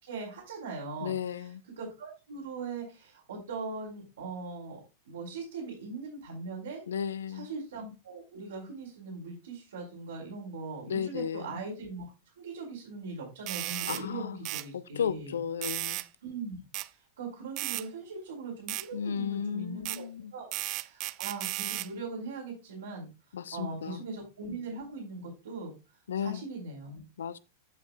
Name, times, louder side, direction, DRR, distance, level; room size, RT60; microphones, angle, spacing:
voice 1, 0.0-1.1 1.8-4.8 5.0-6.8 7.3-12.0 12.4-15.4 16.2-16.6 17.2-20.0 20.3-23.1 23.5-25.7 26.2-27.0, right 3 dB, 65° right, 3.4 m, -40 dB
voice 2, 1.0-1.6 6.9-7.5 10.9-11.6 13.9-14.4 14.7-16.0 18.9-20.3 23.3-24.0 26.1-26.4 27.2-27.4, left 8 dB, 70° left, 0.6 m, -34 dB
sound 1, 13.5-14.0 14.5-14.7 15.6-16.1 16.7-16.9 17.6-17.9 18.7-18.9 19.9-20.0 20.5-21.9, right 19 dB, 40° right, 0.4 m, -34 dB
15.0 x 5.8 x 2.3 m
figure-of-eight pair, 95°, 0 cm